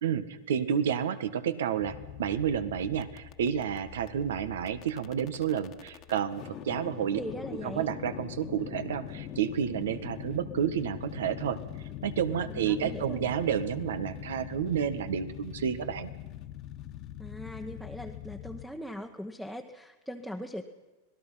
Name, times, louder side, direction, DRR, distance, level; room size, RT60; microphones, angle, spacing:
voice 1, 0.0-7.2 7.6-11.6 12.0-16.1, right 8 dB, 85° right, 12 dB, 1.5 m, -30 dB
sound 1, 1.8-18.6, left 11 dB, 40° left, 1.5 m, -43 dB
voice 2, 7.2-7.9 12.5-13.3 17.2-20.6, equal, ahead, 4 dB, 1.2 m, -40 dB
26.0 x 18.0 x 5.8 m, 1.2 s
hypercardioid pair, 125°, 0 cm